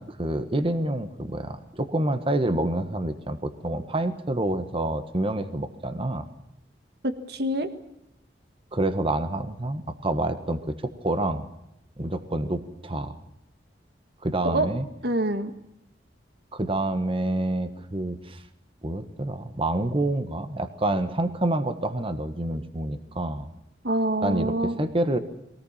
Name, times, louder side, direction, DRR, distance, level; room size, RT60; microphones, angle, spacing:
voice 1, 0.0-6.3 8.7-11.5 12.0-13.2 14.2-14.8 16.5-18.4 18.8-23.5 24.2-25.2, right 1 dB, 30° right, 9 dB, 1.5 m, -27 dB
voice 2, 7.0-7.7 14.4-14.7 15.0-15.5 23.8-24.8, right 1 dB, 65° right, 9 dB, 1.7 m, -26 dB
23.0 x 18.5 x 7.4 m, 0.82 s
head